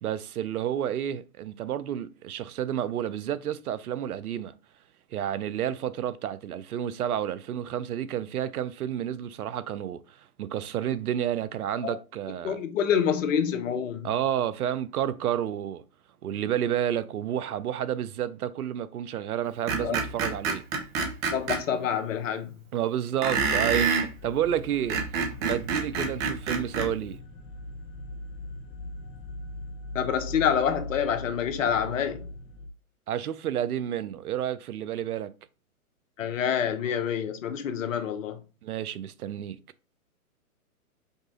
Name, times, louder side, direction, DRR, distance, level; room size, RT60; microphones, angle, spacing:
voice 1, 0.0-4.5 5.1-12.6 14.0-15.8 16.2-20.6 22.7-27.2 33.1-35.3 38.6-39.6, right 10 dB, 80° right, 0.6 m, -30 dB
voice 2, 12.4-14.1 19.8-20.0 21.3-22.5 29.9-32.3 36.2-38.4, left 8 dB, 60° left, 1.0 m, -27 dB
Screech, 19.7-21.6 23.2-24.1 24.7-26.9, right 5 dB, 20° right, 0.8 m, -27 dB
sound 1, 24.2-32.7, left 1 dB, 20° left, 0.5 m, -40 dB
5.3 x 2.4 x 3.8 m
hypercardioid pair, 130°, 44 cm